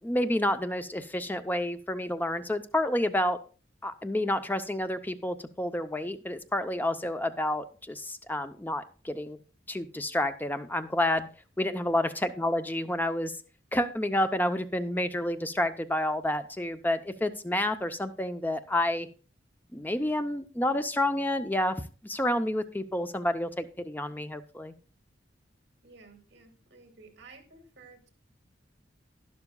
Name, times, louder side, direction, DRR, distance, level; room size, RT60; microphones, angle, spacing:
voice 1, 0.0-3.4 3.8-9.4 9.7-11.3 11.6-13.3 13.7-19.1 19.7-21.8 22.0-24.7, left 1 dB, 10° left, 9 dB, 0.6 m, -29 dB
voice 2, 25.8-28.1, right 4 dB, 70° right, 4 dB, 2.0 m, -53 dB
11.5 x 11.0 x 2.3 m, 0.36 s
head